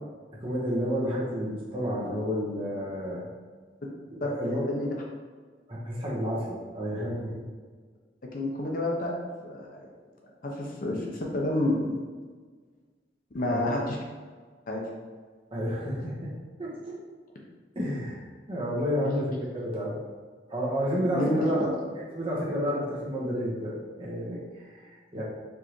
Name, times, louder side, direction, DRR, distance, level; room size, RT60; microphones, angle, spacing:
voice 1, 0.4-3.3 4.1-4.6 5.7-7.4 13.5-13.8 15.5-16.3 16.6-17.0 17.7-18.1 18.5-20.0 20.5-25.2, equal, 30° right, -5 dB, 1.2 m, -31 dB
voice 2, 4.2-4.9 8.3-9.2 9.4-9.9 10.4-12.0 13.3-14.0 14.7-14.8 19.0-19.1 21.0-21.7, left 1 dB, 50° left, -1 dB, 0.8 m, -29 dB
4.7 x 3.6 x 3.1 m, 1.5 s
head